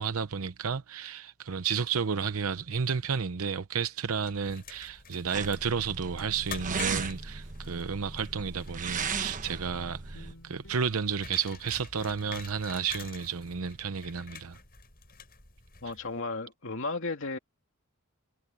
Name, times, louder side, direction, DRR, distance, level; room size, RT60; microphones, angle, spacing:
voice 1, 0.0-14.6, right 6 dB, 80° right, 0.8 m, -32 dB
sound 1, 4.2-16.2, left 6 dB, 45° left, 7.8 m, -48 dB
sound 2, 5.3-10.3, right 5 dB, 35° right, 1.2 m, -36 dB
sound 3, 9.6-14.3, left 1 dB, 90° left, 5.7 m, -58 dB
voice 2, 15.8-17.4, left 3 dB, 60° left, 2.9 m, -34 dB
head